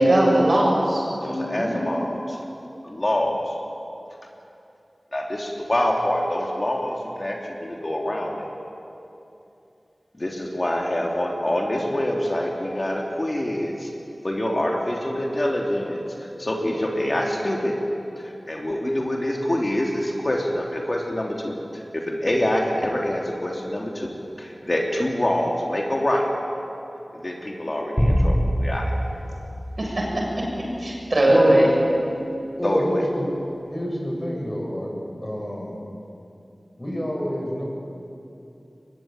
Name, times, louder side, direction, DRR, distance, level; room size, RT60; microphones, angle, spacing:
voice 1, 0.0-1.8 29.8-30.0 30.4-31.7, right 1 dB, 60° right, -2 dB, 7.4 m, -20 dB
voice 2, 1.2-2.4 2.8-3.4 5.1-8.5 10.2-13.9 14.2-16.0 16.4-17.7 18.2-24.1 24.4-26.3 27.1-28.9 32.6-33.1, left 1 dB, 40° left, -1 dB, 3.2 m, -25 dB
sound 1, 28.0-30.6, equal, 5° left, 5.9 m, -24 dB
voice 3, 31.3-31.6 32.6-33.3 33.7-34.9 35.2-35.8 36.8-37.6, equal, 20° left, -1 dB, 7.3 m, -27 dB
22.5 x 22.0 x 9.1 m, 2.7 s
wide cardioid pair, 60°, 0 cm